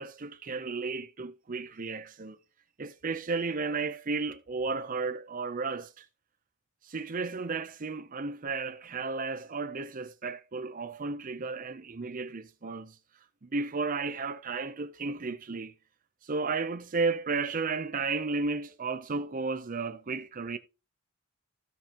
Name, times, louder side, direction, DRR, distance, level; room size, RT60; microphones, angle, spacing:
voice 1, 0.0-2.4 2.8-6.1 6.8-13.0 13.4-15.7 16.2-20.6, right 4 dB, 40° right, 0.6 m, -33 dB
15.5 x 5.5 x 2.9 m
head